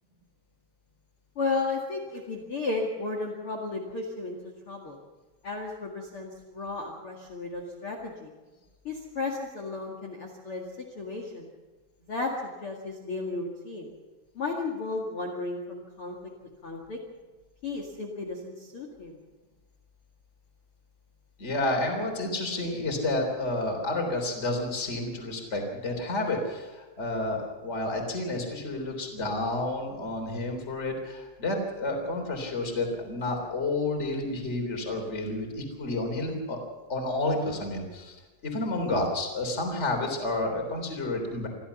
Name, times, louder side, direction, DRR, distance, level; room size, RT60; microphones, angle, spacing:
voice 1, 1.3-5.0 5.4-8.3 8.8-10.6 10.9-11.5 12.1-13.9 14.3-16.2 16.6-17.0 17.6-19.2, left 3 dB, 65° left, 3 dB, 1.3 m, -34 dB
voice 2, 21.4-36.6 36.9-38.2 38.4-41.5, left 2 dB, 15° left, 2 dB, 2.8 m, -30 dB
24.5 x 15.0 x 7.1 m, 1.2 s
omnidirectional pair, 5.8 m